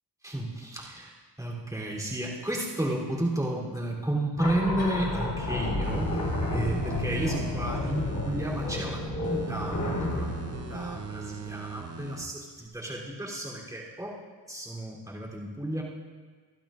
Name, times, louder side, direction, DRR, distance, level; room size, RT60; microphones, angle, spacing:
voice 1, 0.2-6.2 6.5-14.2 14.5-15.8, right 1 dB, 10° right, -5 dB, 3.3 m, -32 dB
sound 1, 4.4-11.8, left 2 dB, 50° left, 3.9 m, -31 dB
sound 2, 5.8-8.8 9.2-12.3 12.7-12.8, right 6 dB, 35° right, 0.8 m, -40 dB
25.0 x 13.5 x 2.5 m, 1.5 s
wide cardioid pair, 110°, 44 cm